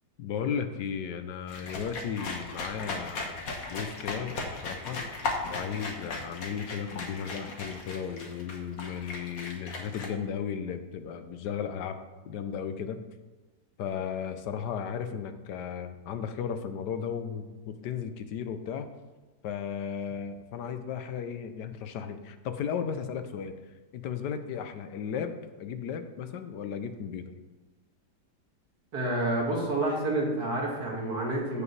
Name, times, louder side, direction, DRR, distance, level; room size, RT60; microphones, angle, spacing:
voice 1, 0.2-3.3 3.7-4.4 4.6-5.1 5.5-12.0 12.2-13.0 13.8-18.9 19.4-23.5 23.9-27.2, left 7 dB, 85° left, 9 dB, 1.3 m, -35 dB
sound 1, 1.5-10.1, left 3 dB, 60° left, 1.6 m, -37 dB
voice 2, 28.9-31.6, right 2 dB, 65° right, -2 dB, 2.4 m, -29 dB
15.0 x 5.0 x 3.3 m, 1.2 s
omnidirectional pair, 1.8 m